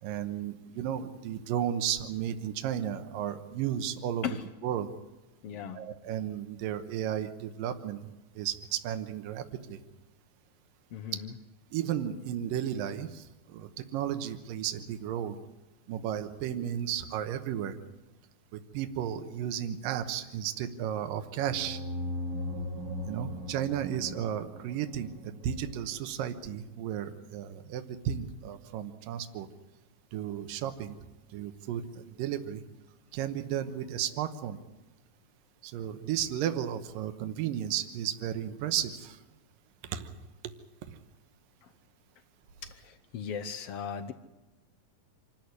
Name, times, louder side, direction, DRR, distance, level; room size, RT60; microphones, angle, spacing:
voice 1, 0.0-4.3 4.6-4.9 5.7-8.1 8.4-9.8 11.1-11.2 11.7-15.4 15.9-17.8 18.5-21.8 23.1-29.5 30.1-31.0 31.3-32.6 33.1-34.6 35.6-39.2 39.8-40.1 40.9-41.0, right 10 dB, 80° right, 8 dB, 2.8 m, -34 dB
voice 2, 5.4-5.8 10.9-11.3 41.6-41.7 42.6-44.1, left 7 dB, 80° left, 10 dB, 1.3 m, -37 dB
sound 1, 21.4-25.9, left 1 dB, 35° right, 2.2 m, -38 dB
26.5 x 13.5 x 9.6 m, 1.1 s
omnidirectional pair, 4.0 m